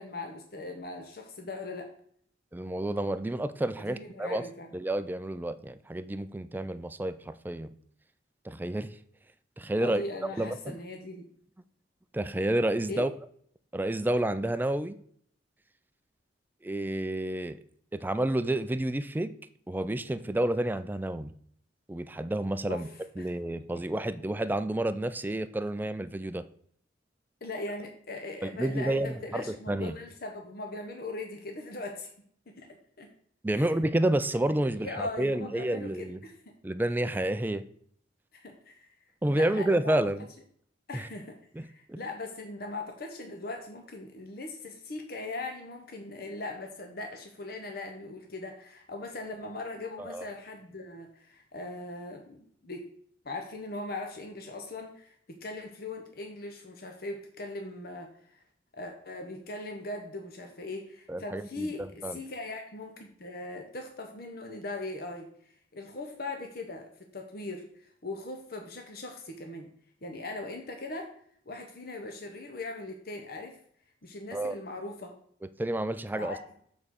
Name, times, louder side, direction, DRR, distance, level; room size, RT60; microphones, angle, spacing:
voice 1, 0.0-1.9 3.8-4.7 9.8-11.2 12.9-13.1 22.7-23.3 27.4-32.1 32.6-33.1 33.5-33.8 34.8-36.5 38.3-38.9 39.3-40.0 40.9-52.8 53.2-58.4 58.7-65.3 65.7-69.7 70.0-71.1 71.5-73.6 74.0-75.1 76.2-76.4, left 2 dB, 55° left, 3 dB, 0.9 m, -40 dB
voice 2, 2.5-4.4 4.7-7.7 8.4-9.0 9.6-10.0 10.4-10.7 12.1-13.1 13.7-15.0 16.6-17.6 17.9-19.3 19.7-21.3 21.9-22.9 23.2-26.4 28.4-30.0 33.4-36.2 36.6-37.6 39.2-40.3 40.9-41.1 41.6-41.7 41.9-42.0 50.0-50.3 61.1-62.2 74.3-74.6 75.6-76.4, right 1 dB, 10° right, 12 dB, 0.3 m, -30 dB
7.2 x 4.2 x 6.3 m, 0.62 s
head